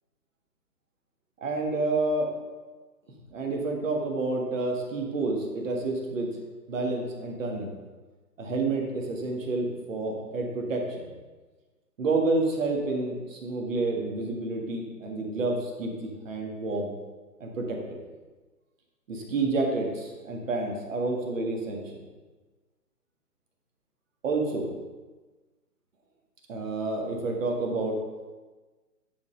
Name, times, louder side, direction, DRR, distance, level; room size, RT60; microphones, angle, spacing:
voice 1, 1.4-2.3 3.3-6.3 6.7-7.7 8.4-11.1 12.0-16.9 17.4-17.8 19.1-21.8 24.2-24.7 26.5-28.0, right 3 dB, 50° right, 1 dB, 1.7 m, -29 dB
9.9 x 3.8 x 5.0 m, 1.3 s
hypercardioid pair, 145°, 48 cm